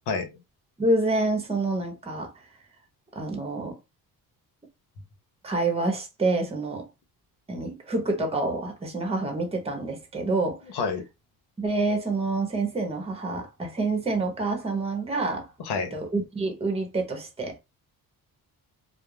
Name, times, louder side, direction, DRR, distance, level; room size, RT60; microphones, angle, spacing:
voice 1, 0.1-0.4 10.7-11.1 15.6-15.9, left 5 dB, 85° left, 0.8 m, -28 dB
voice 2, 0.8-2.4 3.1-3.8 5.4-6.9 7.5-10.6 11.6-15.5 15.9-17.6, right 2 dB, 15° right, 0.8 m, -27 dB
2.4 x 2.0 x 3.1 m
cardioid pair, 115°, 39 cm